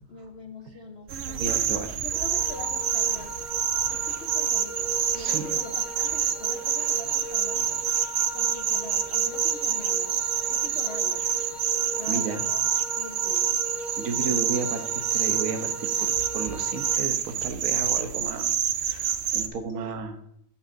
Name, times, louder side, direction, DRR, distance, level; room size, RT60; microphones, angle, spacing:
voice 1, 0.0-3.4 3.8-7.8 8.3-10.2 10.5-11.3 11.9-13.5 14.1-14.4 19.7-19.9, left 3 dB, 50° left, 6 dB, 1.1 m, -43 dB
sound 1, 1.1-19.5, right 9 dB, 60° right, 0.8 m, -27 dB
voice 2, 1.4-2.0 5.1-5.5 12.1-12.4 14.0-20.1, right 5 dB, 75° right, 5 dB, 1.3 m, -33 dB
sound 2, 2.1-17.0, right 1 dB, ahead, 0.7 m, -39 dB
14.5 x 5.7 x 2.6 m, 0.72 s
omnidirectional pair, 1.5 m